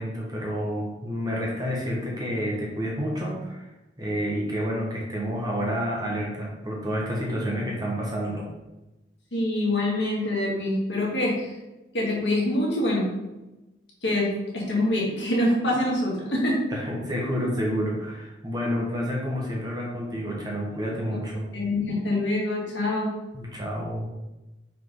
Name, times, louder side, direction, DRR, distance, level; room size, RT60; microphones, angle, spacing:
voice 1, 0.0-3.7 4.0-8.5 16.7-21.5 23.3-24.1, equal, 20° right, -3 dB, 1.3 m, -29 dB
voice 2, 9.3-11.5 11.9-13.1 14.0-16.6 21.5-23.1, left 1 dB, 80° left, -4 dB, 2.2 m, -25 dB
5.8 x 4.8 x 3.8 m, 1.0 s
head